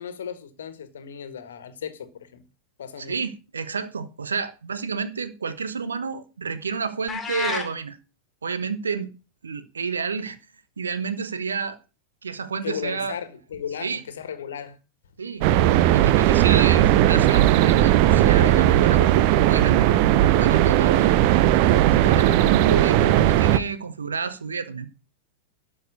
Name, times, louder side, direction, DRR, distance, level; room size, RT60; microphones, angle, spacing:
voice 1, 0.0-2.4 2.8-3.2 12.6-14.8, left 8 dB, 65° left, 1.5 m, -35 dB
voice 2, 3.0-8.0 8.4-9.1 9.4-10.4 10.8-11.8 12.2-13.1 13.8-14.0 15.2-15.5 15.9-19.8 20.4-21.2 21.7-24.9, right 5 dB, 70° right, 1.1 m, -30 dB
sound 1, 7.1-7.7, left 4 dB, 20° left, 2.6 m, -29 dB
sound 2, 15.4-23.6, right 13 dB, 45° right, 0.6 m, -17 dB
12.5 x 4.7 x 8.4 m
figure-of-eight pair, 90°, 0 cm